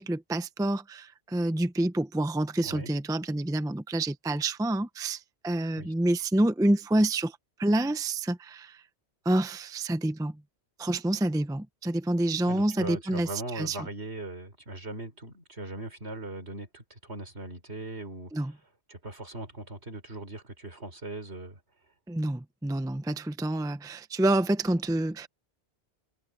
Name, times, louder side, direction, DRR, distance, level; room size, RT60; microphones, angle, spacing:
voice 1, 0.0-5.2 5.4-7.3 7.6-8.7 9.3-10.3 10.8-13.3 13.6-13.8 18.3-18.5 22.1-25.3, right 1 dB, 5° right, 0.6 m, -27 dB
voice 2, 2.6-2.9 5.8-5.9 12.5-18.6 18.9-21.6, right 2 dB, 75° right, 4.3 m, -40 dB
omnidirectional pair, 1.1 m